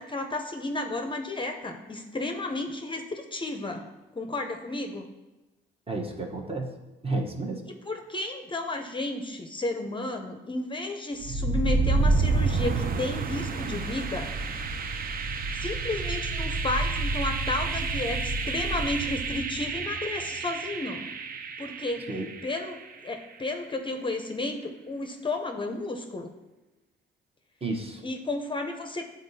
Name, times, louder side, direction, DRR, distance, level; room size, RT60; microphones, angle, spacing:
voice 1, 0.0-3.9 4.2-5.1 7.7-14.3 15.5-21.1 21.6-22.1 22.4-26.3 28.0-29.0, left 2 dB, 25° left, 5 dB, 0.6 m, -32 dB
voice 2, 5.9-6.7 7.0-7.6 22.1-22.3 27.6-28.0, right 2 dB, 30° right, 2 dB, 1.0 m, -31 dB
sound 1, 11.2-23.1, right 3 dB, 45° right, 0.5 m, -29 dB
9.2 x 3.9 x 2.7 m, 1.1 s
cardioid pair, 90°, 20 cm